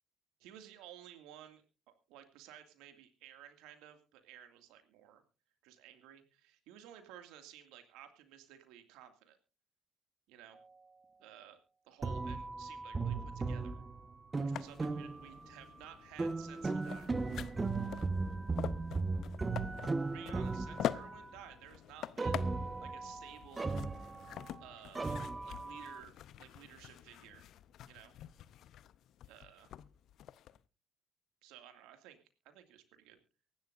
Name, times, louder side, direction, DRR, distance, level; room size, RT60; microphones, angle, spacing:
voice 1, 0.4-5.2 5.6-9.4 10.3-10.6 11.2-11.6 11.9-13.8 14.4-17.1 20.0-23.8 24.6-27.5 27.9-28.1 29.3-29.7 31.4-32.2 32.4-33.2, right 10 dB, 75° right, 8 dB, 2.2 m, -55 dB
sound 1, 12.0-15.5 16.2-21.3 22.2-24.6 25.0-26.0, right 3 dB, 25° right, 1.2 m, -37 dB
sound 2, 14.5-30.6, left 11 dB, 65° left, 0.6 m, -46 dB
24.0 x 11.5 x 2.6 m, 0.33 s
hypercardioid pair, 55°, 0 cm